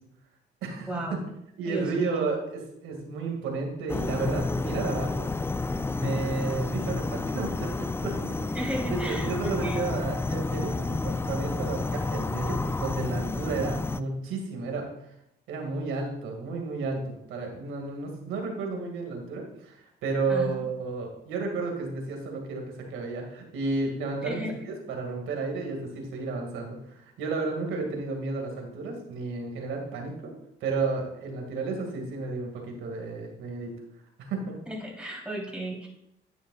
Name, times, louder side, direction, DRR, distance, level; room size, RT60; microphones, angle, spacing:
voice 1, 0.9-1.2 1.6-2.3 8.5-9.3 9.6-9.9 20.3-20.6 24.2-24.5 34.7-35.9, right 1 dB, 5° right, -2 dB, 3.3 m, -34 dB
voice 2, 1.6-5.3 5.9-14.9 15.5-30.3 30.6-33.7 34.2-34.6, right 3 dB, 85° right, 2 dB, 2.1 m, -32 dB
sound 1, 3.9-14.0, left 3 dB, 10° left, 0.3 m, -30 dB
10.0 x 9.2 x 2.4 m, 0.80 s
cardioid pair, 90°, 20 cm